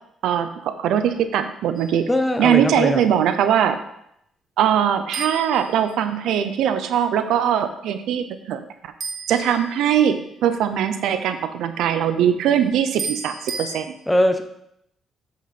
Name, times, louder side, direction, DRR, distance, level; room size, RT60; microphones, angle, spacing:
voice 1, 0.2-2.1 2.4-3.8 4.6-8.6 9.3-13.9, right 9 dB, 85° right, 10 dB, 0.7 m, -21 dB
sound 1, 1.7-2.2 5.1-6.5 9.0-10.3 13.0-13.8, right 4 dB, 50° right, 1.6 m, -34 dB
voice 2, 2.1-3.0 14.1-14.4, left 1 dB, 10° left, 7 dB, 0.9 m, -20 dB
7.9 x 6.2 x 4.3 m, 0.76 s
cardioid pair, 90°, 0 cm